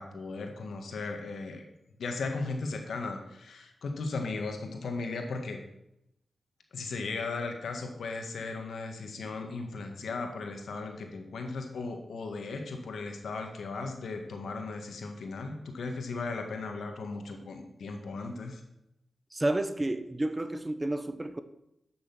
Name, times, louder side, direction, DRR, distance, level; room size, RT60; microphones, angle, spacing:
voice 1, 0.0-1.6 2.0-5.6 6.7-18.6, left 3 dB, 85° left, 4 dB, 1.7 m, -36 dB
voice 2, 19.3-21.4, right 1 dB, 25° right, 10 dB, 1.0 m, -30 dB
11.0 x 6.4 x 6.1 m, 0.83 s
cardioid pair, 65°, 0 cm